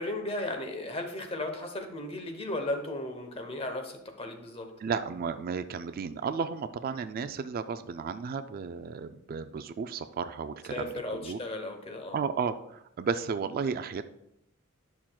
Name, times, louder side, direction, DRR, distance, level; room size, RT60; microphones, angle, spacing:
voice 1, 0.0-4.7 10.7-12.2, left 1 dB, 25° left, 5 dB, 0.9 m, -35 dB
voice 2, 4.8-11.4 12.1-14.0, right 5 dB, 45° right, 10 dB, 0.3 m, -33 dB
11.0 x 5.8 x 2.3 m, 0.79 s
head